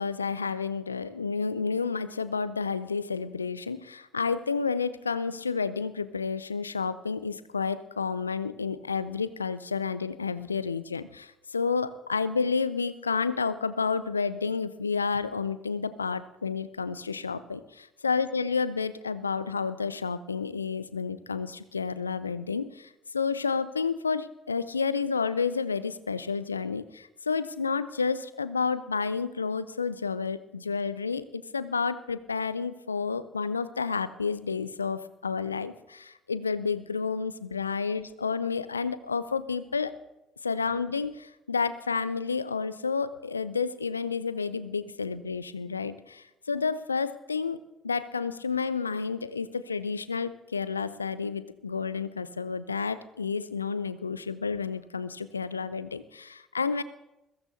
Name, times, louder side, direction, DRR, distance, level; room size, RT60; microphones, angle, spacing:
voice 1, 0.0-39.9 40.4-56.8, left 5 dB, 85° left, 16 dB, 0.4 m, -30 dB
21.5 x 16.0 x 2.7 m, 0.94 s
figure-of-eight pair, 50°, 0 cm